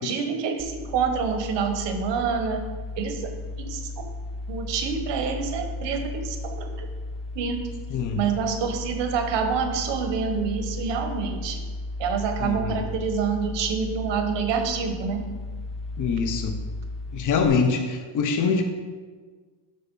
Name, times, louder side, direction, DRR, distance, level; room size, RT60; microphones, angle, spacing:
voice 1, 0.0-2.6 3.0-3.3 3.6-3.8 4.5-6.9 7.3-7.6 8.2-11.6 12.0-15.2, right 6 dB, 70° right, 6 dB, 1.3 m, -27 dB
sound 1, 0.6-17.5, left 2 dB, ahead, 0.3 m, -35 dB
voice 2, 7.9-8.2 12.4-12.9 16.0-16.6 17.1-18.6, left 5 dB, 45° left, 5 dB, 0.9 m, -24 dB
12.0 x 4.1 x 5.4 m, 1.5 s
cardioid pair, 170°, 44 cm